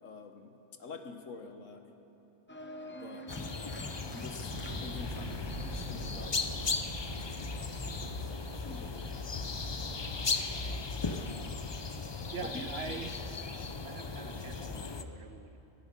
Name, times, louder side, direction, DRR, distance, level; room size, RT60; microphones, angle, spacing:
voice 1, 0.0-1.8 3.0-3.3 4.1-4.6 4.8-6.5 7.7-9.2 9.4-9.5 12.5-13.0, left 4 dB, 80° left, 6 dB, 1.5 m, -47 dB
Organ, 2.5-8.1, equal, 10° left, 0.9 m, -48 dB
sound 1, 3.3-15.0, left 4 dB, 40° left, 0.4 m, -37 dB
sound 2, 4.5-12.3, right 1 dB, 30° right, 1.3 m, -45 dB
voice 2, 12.3-13.5 13.8-15.6, right 5 dB, 60° right, 9 dB, 0.9 m, -44 dB
17.5 x 15.0 x 5.4 m, 3.0 s
omnidirectional pair, 1.3 m